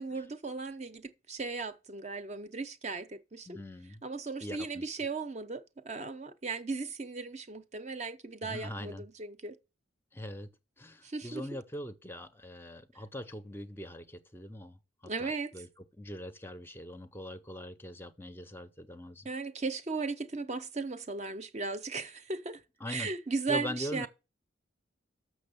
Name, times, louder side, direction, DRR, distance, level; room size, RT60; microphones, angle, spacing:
voice 1, 0.0-3.6 4.0-9.6 11.0-11.4 15.0-15.5 19.2-22.6 22.9-24.1, right 4 dB, 35° right, 0.6 m, -36 dB
voice 2, 3.5-4.0 4.4-4.9 8.4-9.1 10.1-10.5 10.8-14.8 15.0-15.7 16.0-19.3 22.8-23.1 23.5-24.1, equal, 10° left, 0.5 m, -42 dB
6.7 x 6.2 x 6.7 m
head